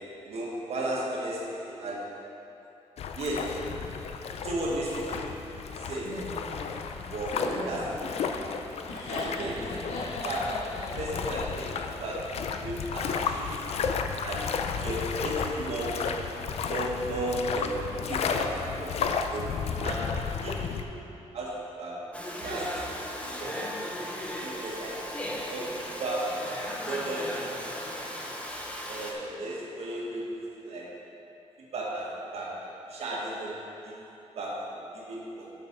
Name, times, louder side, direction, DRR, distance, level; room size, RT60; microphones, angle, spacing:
voice 1, 0.0-2.1 3.2-3.6 4.4-5.4 5.8-6.1 7.1-8.2 9.1-9.6 10.2-10.6 11.0-13.7 14.2-16.2 16.7-17.8 18.1-19.5 19.8-20.2 20.4-20.8 21.3-22.0 22.4-22.9 23.2-23.7 24.4-25.0 25.5-26.5 26.9-27.5 28.9-30.9 31.7-33.6 33.8-33.9 34.3-35.5, right 1 dB, 60° right, -4 dB, 1.6 m, -34 dB
sound 1, 3.0-20.8, left 6 dB, 60° left, 0.4 m, -33 dB
Laughter, 6.0-12.1, left 1 dB, 85° left, 1.5 m, -38 dB
Domestic sounds home sounds, 22.1-29.1, equal, 10° left, 0.7 m, -36 dB
7.0 x 6.0 x 5.2 m, 2.9 s
wide cardioid pair, 170°, 12 cm